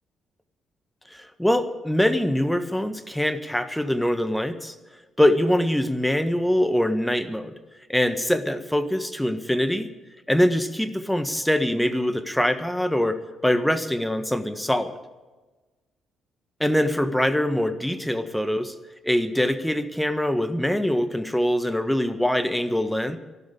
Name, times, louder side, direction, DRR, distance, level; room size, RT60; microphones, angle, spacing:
voice 1, 1.1-4.7 5.2-7.5 7.9-9.9 10.3-13.2 13.4-15.0 16.6-18.7 19.0-23.2, left 1 dB, 5° left, 10 dB, 1.5 m, -23 dB
14.0 x 12.0 x 8.4 m, 1.2 s
hypercardioid pair, 45°, 0 cm